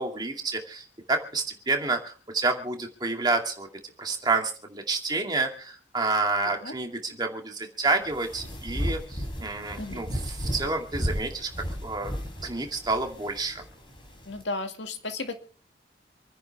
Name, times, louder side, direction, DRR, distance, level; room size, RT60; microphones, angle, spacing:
voice 1, 0.0-3.7 4.0-11.5 11.8-12.1 12.4-13.6, right 3 dB, 25° right, 2 dB, 2.4 m, -29 dB
sound 1, 8.0-14.4, equal, 25° left, 4.6 m, -34 dB
voice 2, 14.3-15.4, left 2 dB, 80° left, 6 dB, 2.2 m, -34 dB
28.0 x 10.0 x 3.5 m, 0.38 s
head